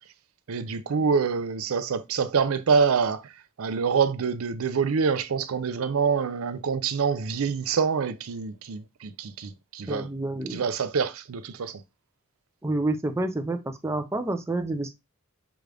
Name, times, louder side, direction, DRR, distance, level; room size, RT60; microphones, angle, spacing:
voice 1, 0.5-3.2 3.6-10.1 10.5-11.8, right 5 dB, 85° right, 0.5 m, -26 dB
voice 2, 9.9-10.6 12.6-13.6 13.8-14.9, right 2 dB, 15° right, 0.4 m, -28 dB
6.1 x 2.4 x 3.3 m
head